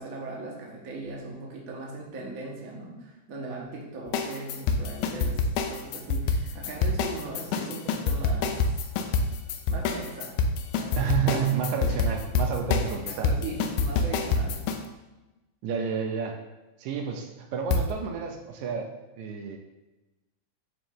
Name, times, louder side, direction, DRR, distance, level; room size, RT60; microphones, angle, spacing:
voice 1, 0.0-8.8 9.7-10.3 10.7-11.5 13.1-14.6, right 2 dB, 65° right, -3 dB, 0.8 m, -39 dB
sound 1, 4.1-14.8 17.7-17.8, left 4 dB, 85° left, 2.1 m, -26 dB
voice 2, 11.0-13.3 15.6-16.4 16.8-19.6, right 7 dB, 80° right, 4 dB, 2.0 m, -30 dB
8.9 x 3.1 x 3.7 m, 1.1 s
omnidirectional pair, 3.4 m